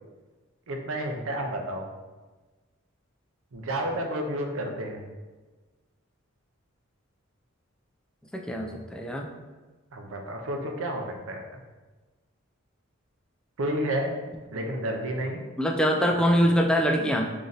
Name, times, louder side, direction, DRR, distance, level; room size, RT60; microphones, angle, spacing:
voice 1, 0.7-1.9 3.5-5.0 9.9-11.6 13.6-14.2 14.5-15.4, right 1 dB, 75° right, 2 dB, 0.6 m, -31 dB
voice 2, 8.3-9.3 15.6-17.3, equal, 5° left, 1 dB, 0.3 m, -24 dB
3.2 x 2.6 x 3.9 m, 1.3 s
head